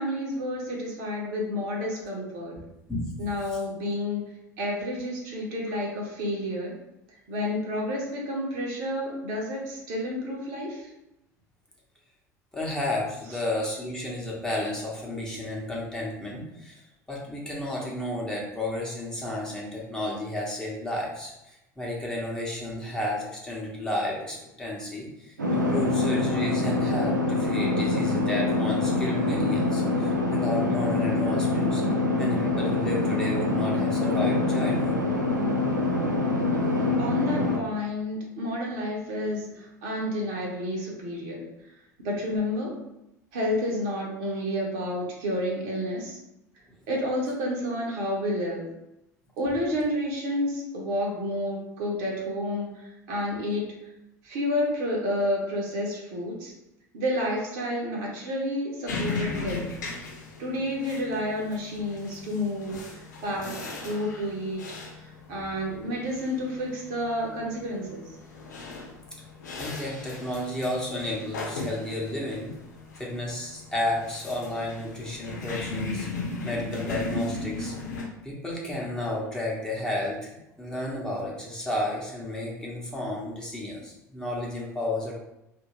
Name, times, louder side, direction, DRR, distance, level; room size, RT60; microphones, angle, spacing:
voice 1, 0.0-2.5 3.2-4.2 4.6-6.7 7.3-10.9 37.0-41.4 42.0-42.7 43.3-46.2 46.9-48.6 49.4-53.6 54.2-56.5 56.9-59.7 60.4-64.6 65.0-68.0, left 1 dB, 55° right, -2 dB, 1.0 m, -30 dB
voice 2, 12.5-31.8 32.2-35.0 69.6-72.5 73.0-76.1 76.4-77.7 78.2-85.1, left 1 dB, 5° left, -4 dB, 1.0 m, -32 dB
sound 1, 25.4-37.6, left 2 dB, 85° right, 0.4 m, -25 dB
sound 2, 58.9-78.0, left 3 dB, 75° left, 0.9 m, -37 dB
2.9 x 2.6 x 3.0 m, 0.88 s
figure-of-eight pair, 75°, 10 cm